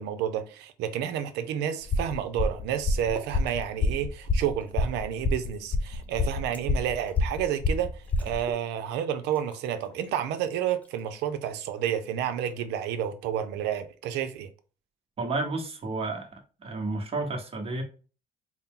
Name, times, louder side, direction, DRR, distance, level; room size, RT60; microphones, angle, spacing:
voice 1, 0.0-14.5, right 9 dB, 90° right, 0.6 m, -30 dB
sound 1, 1.8-8.5, left 3 dB, 30° left, 0.5 m, -27 dB
sound 2, 2.0-2.2 2.6-3.6 4.0-5.1 5.5-7.3 7.7-7.8 8.0-8.7 9.0-9.1 9.3-10.4 10.8-11.3 12.2-12.7, left 1 dB, 10° left, 1.0 m, -49 dB
voice 2, 15.2-16.3 16.6-17.8, right 3 dB, 35° right, 1.2 m, -31 dB
4.2 x 2.1 x 3.7 m
cardioid pair, 110°, 17 cm